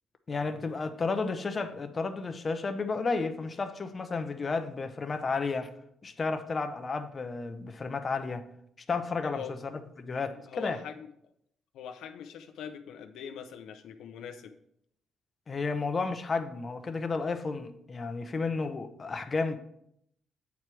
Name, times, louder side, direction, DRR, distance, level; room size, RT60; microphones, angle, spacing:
voice 1, 0.3-5.7 6.0-8.4 8.9-9.4 10.0-10.8 15.5-19.6, left 4 dB, 35° left, 7 dB, 0.8 m, -32 dB
voice 2, 9.2-9.5 10.3-11.1 11.7-14.5, left 7 dB, 85° left, 6 dB, 0.6 m, -42 dB
8.3 x 4.6 x 4.8 m, 0.73 s
cardioid pair, 90°, 0 cm